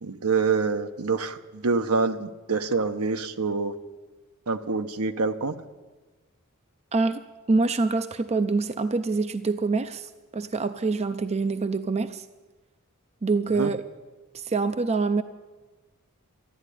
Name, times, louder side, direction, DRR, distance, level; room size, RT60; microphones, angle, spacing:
voice 1, 0.0-3.7 4.5-5.5 13.5-13.7, right 4 dB, 70° right, 9 dB, 0.9 m, -26 dB
voice 2, 6.9-7.2 7.5-12.2 13.2-13.8 14.3-15.2, right 3 dB, 30° right, 10 dB, 0.5 m, -25 dB
13.0 x 10.5 x 9.9 m, 1.2 s
head